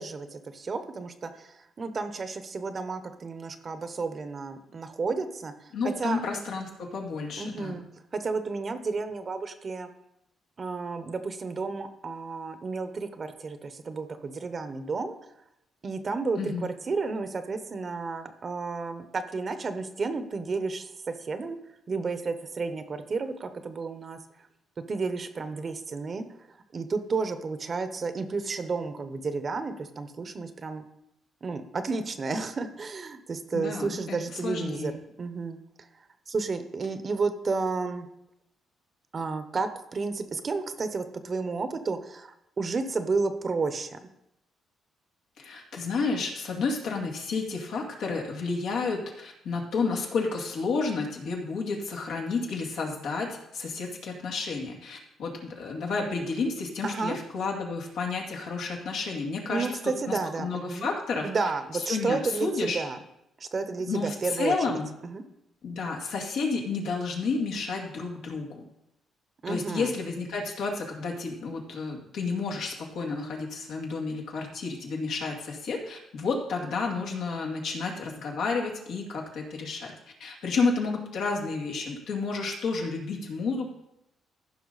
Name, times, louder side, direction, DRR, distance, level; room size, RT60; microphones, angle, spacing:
voice 1, 0.0-6.2 7.4-7.8 8.1-9.9 10.6-15.1 15.8-21.6 21.9-24.2 24.9-26.3 26.7-30.8 31.4-34.9 35.2-35.9 36.3-38.1 39.1-44.0 56.8-57.2 59.5-60.9 61.2-63.0 63.4-64.5 65.0-65.2 69.4-69.9, right 4 dB, 40° right, 9 dB, 0.9 m, -32 dB
voice 2, 5.7-7.8 16.4-16.7 33.5-34.2 34.4-35.0 45.4-59.7 60.0-61.5 61.9-62.8 63.9-64.9 65.6-68.6 69.5-79.9 80.2-83.7, left 4 dB, 80° left, -1 dB, 2.2 m, -31 dB
14.5 x 5.6 x 4.1 m, 0.83 s
cardioid pair, 90°, 0 cm